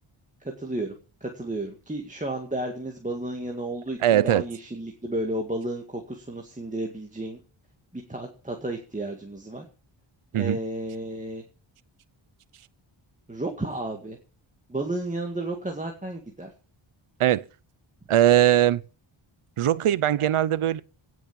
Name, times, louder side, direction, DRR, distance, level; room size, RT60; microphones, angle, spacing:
voice 1, 0.4-7.4 7.9-9.7 10.3-11.4 13.3-14.2 14.7-16.5, right 1 dB, 15° right, 1.9 m, -32 dB
voice 2, 4.0-4.4 10.3-10.6 17.2-17.4 18.1-18.8 19.6-20.8, right 12 dB, 85° right, 0.7 m, -20 dB
17.5 x 6.4 x 7.0 m
wide cardioid pair, 125°, 49 cm